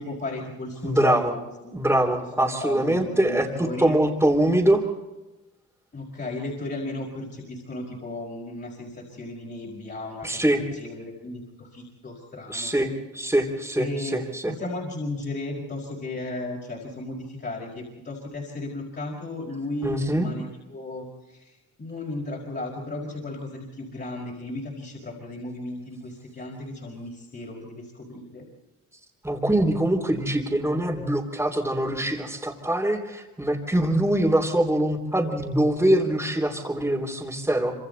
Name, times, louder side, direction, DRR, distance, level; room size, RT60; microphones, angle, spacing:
voice 1, 0.0-1.4 1.6-1.7 2.4-4.0 5.9-12.7 13.7-28.5, left 2 dB, 35° left, -2 dB, 5.2 m, -35 dB
voice 2, 0.8-1.3 1.7-4.8 10.2-10.6 12.5-14.5 19.8-20.3 29.2-37.7, right 1 dB, 5° right, -4 dB, 3.3 m, -23 dB
26.0 x 26.0 x 4.1 m, 1.1 s
cardioid pair, 90°, 30 cm